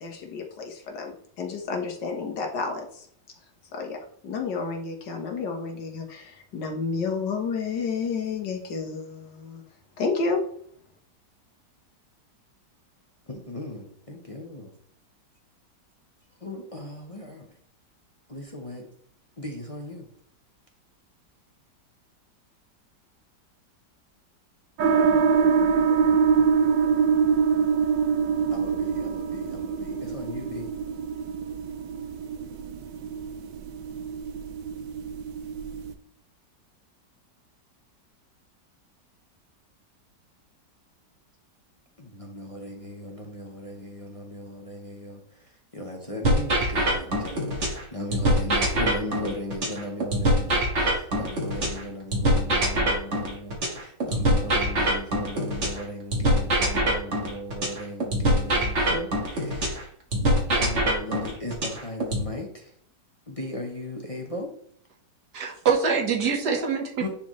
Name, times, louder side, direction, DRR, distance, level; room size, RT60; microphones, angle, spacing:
voice 1, 0.0-3.1 3.7-9.6 10.0-10.4, left 4 dB, 75° left, 1.9 m, -31 dB
voice 2, 13.3-14.7 16.4-17.5 18.3-18.9 19.4-20.0 28.5-30.7 42.0-45.2 45.7-59.8 60.5-62.7 63.3-64.5 66.6-66.7 67.0-67.1, left 1 dB, 25° left, 0.8 m, -37 dB
sound 1, 24.8-35.9, right 6 dB, 80° right, 1.4 m, -24 dB
sound 2, 46.2-47.8 48.1-51.8 52.1-55.8 56.1-59.8 60.1-62.2, right 1 dB, 45° right, 1.7 m, -24 dB
voice 3, 65.3-67.1, right 6 dB, 65° right, 1.8 m, -24 dB
10.0 x 4.2 x 3.1 m
omnidirectional pair, 1.9 m